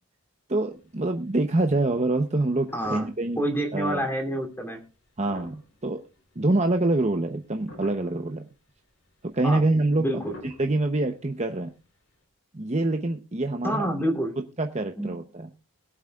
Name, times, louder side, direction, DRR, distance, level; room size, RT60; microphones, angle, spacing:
voice 1, 0.5-3.4 3.7-4.0 5.2-6.0 6.4-8.4 9.3-10.1 10.4-11.7 12.5-13.9 14.6-15.5, right 2 dB, 30° right, 5 dB, 0.8 m, -25 dB
sound 1, 0.6-1.3 1.8-1.9 2.3-3.4 3.8-4.0 5.0-6.5 6.9-7.3 7.7-8.3 8.8-8.9 9.0-9.2 10.1-11.7 12.0-12.1, left 1 dB, 60° left, 3.8 m, -45 dB
voice 2, 2.7-3.1 3.4-4.8 9.4-9.6 10.0-10.3 13.6-14.3 15.0-15.1, equal, 10° left, 2 dB, 2.9 m, -27 dB
22.0 x 8.1 x 2.4 m, 0.30 s
head